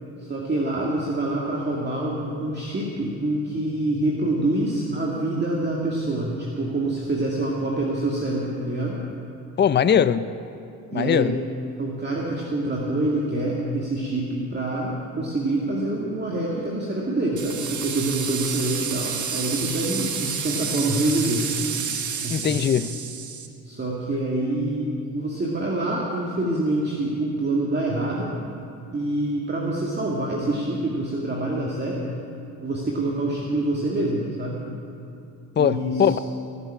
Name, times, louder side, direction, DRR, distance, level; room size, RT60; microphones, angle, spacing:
voice 1, 0.2-9.0 10.9-11.3 11.8-21.5 22.2-22.6 23.6-28.4 28.9-32.2 32.6-34.6 35.6-36.2, right 2 dB, 25° right, -3 dB, 2.1 m, -26 dB
voice 2, 9.6-10.3 10.9-11.4 22.3-23.0 35.6-36.2, left 8 dB, 30° left, 14 dB, 0.5 m, -20 dB
sound 1, 17.4-23.5, right 6 dB, 50° right, 1.5 m, -30 dB
18.0 x 7.1 x 9.0 m, 2.8 s
supercardioid pair, 75°, 38 cm